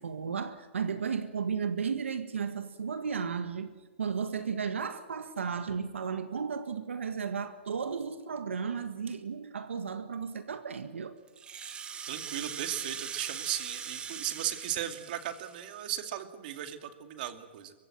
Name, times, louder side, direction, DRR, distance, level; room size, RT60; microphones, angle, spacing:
voice 1, 0.0-3.7 4.0-11.1, right 6 dB, 85° right, 9 dB, 1.7 m, -34 dB
Rattle (instrument), 11.3-16.0, right 7 dB, 15° right, 1.3 m, -41 dB
voice 2, 12.1-17.7, right 11 dB, 45° right, 8 dB, 2.5 m, -36 dB
23.5 x 23.5 x 7.6 m, 1.4 s
hypercardioid pair, 145°, 7 cm